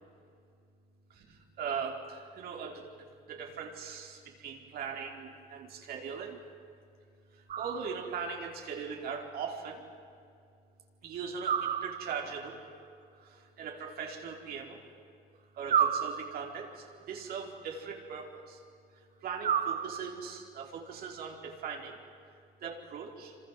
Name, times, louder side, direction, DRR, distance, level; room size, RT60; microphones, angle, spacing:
voice 1, 1.1-6.4 7.3-9.9 11.0-12.6 13.2-15.0 15.6-18.6 18.9-22.0 22.3-22.4 22.6-23.4, right 6 dB, 65° right, 1 dB, 4.8 m, -40 dB
sound 1, 7.5-8.3 11.4-12.4 15.7-16.7 19.4-20.4, right 8 dB, 50° right, 1.3 m, -32 dB
27.5 x 26.5 x 7.8 m, 2.4 s
cardioid pair, 110°, 17 cm